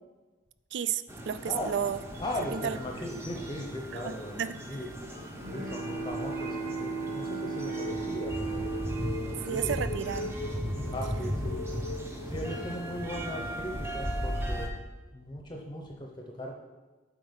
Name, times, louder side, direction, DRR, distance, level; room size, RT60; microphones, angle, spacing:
voice 1, 0.7-2.0 2.5-2.8 4.0-4.6 9.5-10.4, right 8 dB, 60° right, 13 dB, 0.3 m, -32 dB
sound 1, 1.1-14.7, equal, 15° right, 0.7 m, -37 dB
voice 2, 2.2-4.4 4.7-4.9 5.5-8.6 9.2-9.8 10.9-11.6 12.2-14.7 15.1-16.5, equal, 20° left, 1 dB, 0.7 m, -38 dB
sound 2, 4.8-13.7, left 3 dB, 75° left, 0.5 m, -42 dB
Bowed string instrument, 5.3-10.5, right 4 dB, 35° right, 1.1 m, -36 dB
7.8 x 4.9 x 5.2 m, 1.2 s
head